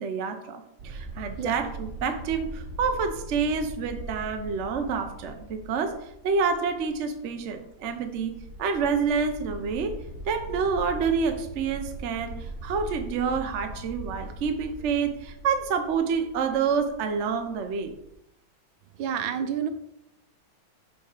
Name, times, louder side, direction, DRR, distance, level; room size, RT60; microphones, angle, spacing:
voice 1, 0.0-5.9 6.2-8.3 8.6-9.9 10.3-17.9, right 5 dB, 55° right, 6 dB, 0.8 m, -28 dB
sound 1, 0.8-18.1, right 2 dB, 40° right, 1.6 m, -41 dB
voice 2, 19.0-19.7, right 8 dB, 80° right, 10 dB, 1.4 m, -29 dB
6.8 x 4.7 x 4.9 m, 0.80 s
omnidirectional pair, 2.2 m